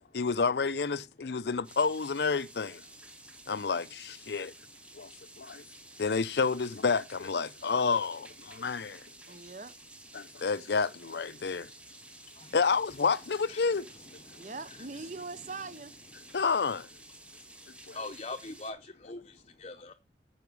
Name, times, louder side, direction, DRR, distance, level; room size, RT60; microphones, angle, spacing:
voice 1, 0.1-2.8 3.5-4.5 4.9-5.1 5.4-5.6 6.0-9.0 10.1-11.7 12.5-13.9 16.3-16.9 17.9-18.0, left 5 dB, 75° left, 0.6 m, -29 dB
sound 1, 1.6-18.7, right 1 dB, 5° right, 1.3 m, -52 dB
voice 2, 9.3-9.7 14.4-15.9, right 3 dB, 45° right, 0.8 m, -41 dB
voice 3, 17.9-19.9, left 3 dB, 35° left, 0.7 m, -42 dB
9.4 x 5.9 x 5.3 m
head